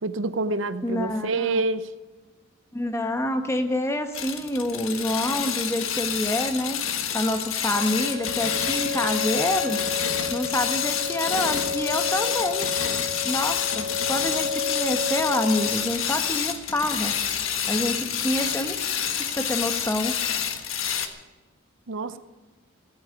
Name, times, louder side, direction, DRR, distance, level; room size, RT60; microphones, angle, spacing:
voice 1, 0.0-1.9 21.9-22.2, right 3 dB, 65° right, 0.7 m, -27 dB
voice 2, 0.8-1.6 2.7-6.8 7.1-9.8 10.3-12.7 13.2-17.1 17.7-18.9 19.2-20.1, left 1 dB, 15° left, 1.1 m, -27 dB
sound 1, 4.1-21.1, left 8 dB, 75° left, 1.5 m, -28 dB
sound 2, 7.7-15.7, left 4 dB, 15° right, 4.5 m, -31 dB
16.0 x 8.9 x 9.5 m
head